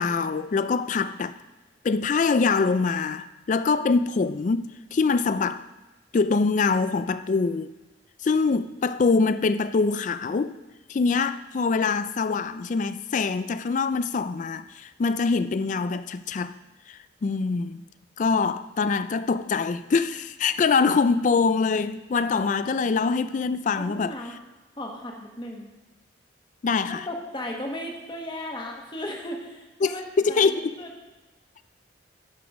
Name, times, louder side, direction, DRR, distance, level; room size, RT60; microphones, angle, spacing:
voice 1, 0.0-1.4 1.8-5.6 6.1-7.7 8.2-10.6 10.9-16.5 16.9-17.8 18.2-24.1 26.6-27.1 29.8-30.8, left 4 dB, 40° left, 0.3 m, -24 dB
voice 2, 23.8-24.4 24.8-25.7 26.8-30.0 30.3-30.9, left 1 dB, 25° left, 1.3 m, -36 dB
10.0 x 5.0 x 5.9 m
head